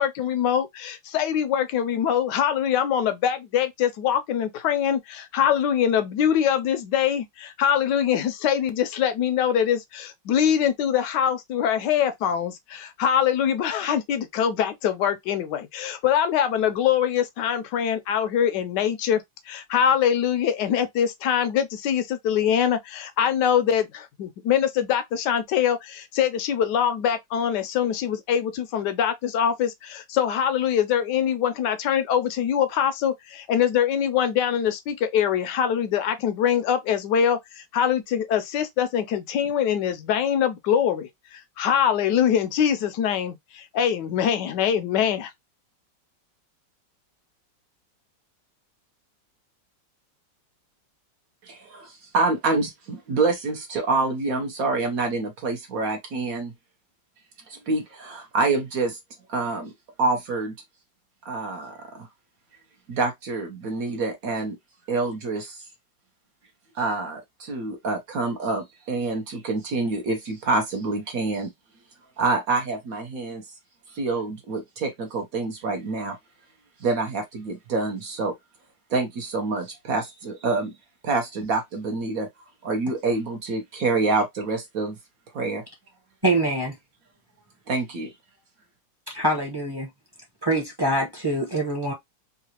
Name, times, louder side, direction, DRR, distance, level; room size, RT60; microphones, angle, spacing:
voice 1, 0.0-45.3, left 9 dB, 75° left, 1.1 m, -23 dB
voice 2, 51.4-56.5 57.5-59.0 59.3-59.7 60.0-60.5 61.2-62.1 62.9-64.5 64.9-65.6 66.8-71.5 72.2-73.4 73.9-76.2 76.8-78.3 78.9-80.7 81.0-82.3 82.6-85.0 85.3-85.6 87.7-88.1, right 3 dB, 60° right, 1.1 m, -27 dB
voice 3, 86.2-86.7 89.1-89.9 90.4-91.9, right 1 dB, 20° right, 0.7 m, -24 dB
3.8 x 2.3 x 2.8 m
omnidirectional pair, 2.0 m